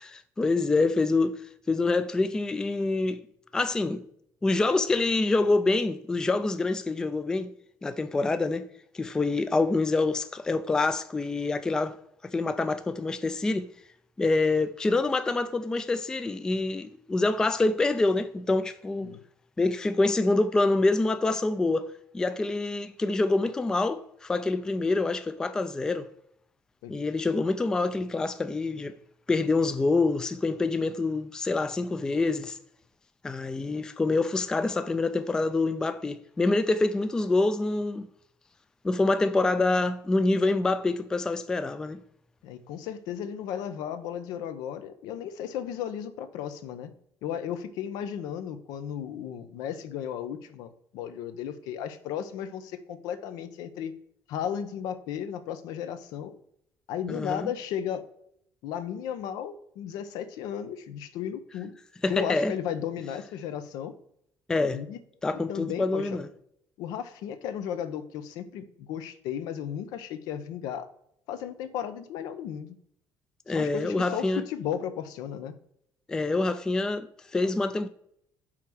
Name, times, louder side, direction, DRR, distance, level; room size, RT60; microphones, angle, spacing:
voice 1, 0.0-1.4 1.7-3.2 3.5-4.1 4.4-7.5 7.8-8.7 8.9-12.0 12.2-13.7 14.2-19.1 19.6-26.1 26.9-28.9 29.3-32.6 33.2-38.1 38.8-42.0 57.1-57.5 62.0-62.5 64.5-64.8 65.2-66.3 73.5-74.4 76.1-77.9, left 3 dB, 10° left, 0.3 m, -26 dB
voice 2, 42.4-46.9 47.2-53.9 54.3-56.4 56.9-58.0 58.6-61.7 62.1-63.9 64.7-65.0 65.3-66.2 66.8-70.9 71.3-72.7 73.5-75.5, left 9 dB, 85° left, 0.8 m, -35 dB
5.9 x 4.5 x 6.1 m
cardioid pair, 165°, 6 cm